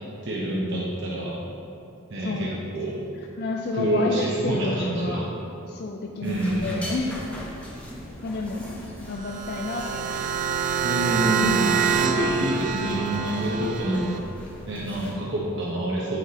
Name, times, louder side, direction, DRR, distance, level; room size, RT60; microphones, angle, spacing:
voice 1, 0.2-1.3 2.1-2.9 3.7-5.3 6.2-6.8 10.8-14.1 14.7-16.2, right 1 dB, 60° right, -5 dB, 0.9 m, -27 dB
voice 2, 2.2-2.7 3.4-5.3 5.7-7.2 8.2-8.6 9.1-10.2 11.2-11.7, left 3 dB, 50° left, 1 dB, 0.4 m, -30 dB
sound 1, 6.2-15.1, equal, 5° left, 1.0 m, -40 dB
sound 2, 9.1-14.2, right 7 dB, 40° right, 0.4 m, -26 dB
9.8 x 4.7 x 2.9 m, 2.7 s
head